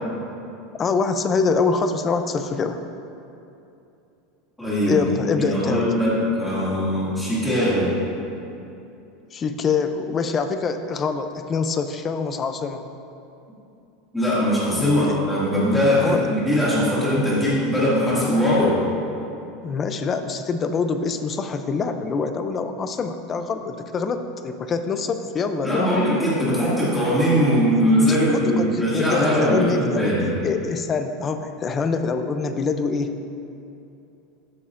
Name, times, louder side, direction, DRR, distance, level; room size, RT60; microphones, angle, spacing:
voice 1, 0.8-2.8 4.8-5.9 9.3-12.9 14.8-15.2 16.0-16.2 19.6-26.0 27.8-30.1 30.4-33.1, left 4 dB, 20° left, 8 dB, 0.4 m, -25 dB
voice 2, 4.6-5.0 5.4-7.9 14.1-18.8 25.6-30.3, equal, 5° left, -9 dB, 2.1 m, -21 dB
12.5 x 8.6 x 2.5 m, 2.8 s
supercardioid pair, 175°, 0 cm